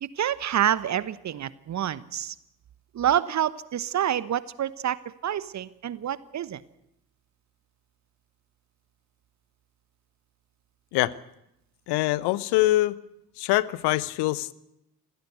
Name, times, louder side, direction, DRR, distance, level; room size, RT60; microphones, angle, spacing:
voice 1, 0.0-2.3 2.9-6.6, right 10 dB, 35° right, 18 dB, 1.1 m, -27 dB
voice 2, 11.9-13.0 13.4-14.5, left 17 dB, 55° left, 20 dB, 1.0 m, -24 dB
27.0 x 16.0 x 7.9 m, 0.82 s
figure-of-eight pair, 55°, 47 cm